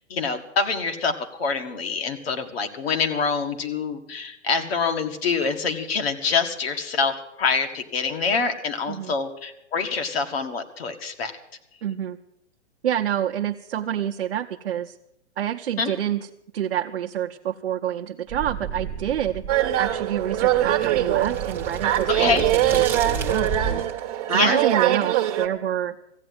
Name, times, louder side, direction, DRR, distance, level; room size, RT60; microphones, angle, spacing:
voice 1, 0.1-1.1 1.4-11.3 15.8-15.9 22.1-22.5 24.3-24.6, left 5 dB, 60° left, 5 dB, 1.9 m, -25 dB
voice 2, 11.8-12.2 12.8-15.0 15.4-16.3 16.5-19.4 19.8-23.8 24.3-25.9, right 10 dB, 60° right, 2 dB, 0.8 m, -27 dB
sound 1, 18.3-24.0, right 5 dB, 5° right, 0.8 m, -33 dB
sound 2, 19.5-25.5, right 12 dB, 35° right, 1.0 m, -23 dB
15.0 x 8.4 x 9.5 m, 0.82 s
hypercardioid pair, 150°, 35 cm